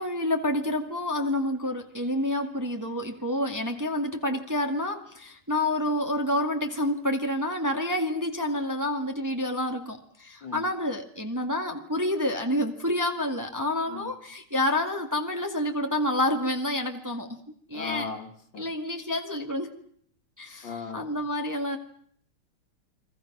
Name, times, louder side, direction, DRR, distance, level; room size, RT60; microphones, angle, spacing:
voice 1, 0.0-17.4 17.7-18.1 18.6-19.7 20.4-21.8, left 1 dB, 10° right, 4 dB, 1.8 m, -28 dB
voice 2, 17.7-18.6 20.6-21.1, left 5 dB, 60° left, 5 dB, 3.0 m, -37 dB
30.0 x 23.0 x 6.1 m, 0.64 s
omnidirectional pair, 2.3 m